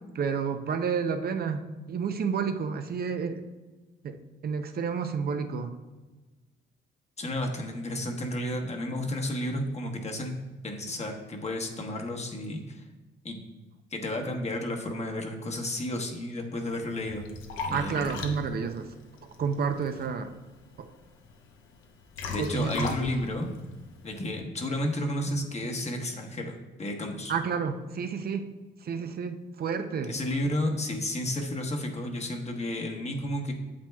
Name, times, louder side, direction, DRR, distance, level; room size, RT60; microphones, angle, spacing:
voice 1, 0.1-3.4 4.0-5.7 17.7-18.9 19.4-20.3 20.8-20.9 22.4-23.1 27.3-28.5 28.8-30.1, right 6 dB, 50° right, 8 dB, 0.6 m, -30 dB
voice 2, 7.2-10.3 10.6-12.8 13.2-13.4 13.9-17.3 17.6-18.2 22.3-23.5 24.0-27.3 30.1-33.5, left 1 dB, 35° left, 2 dB, 1.2 m, -32 dB
Liquid, 16.7-24.4, left 4 dB, 90° left, 0.9 m, -40 dB
8.7 x 7.1 x 2.3 m, 1.2 s
cardioid pair, 90°, 20 cm